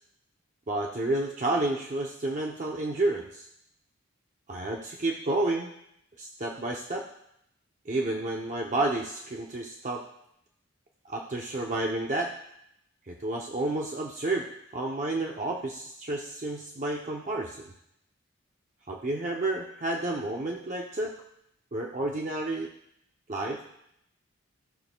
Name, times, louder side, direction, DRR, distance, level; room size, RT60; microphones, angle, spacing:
voice 1, 0.7-3.5 4.5-5.7 6.2-7.1 7.9-10.0 11.1-12.3 13.1-14.5 14.7-17.6 18.9-21.1 21.7-22.7 23.3-23.6, right 2 dB, 35° right, 0 dB, 0.6 m, -30 dB
14.0 x 6.9 x 2.2 m, 0.77 s
head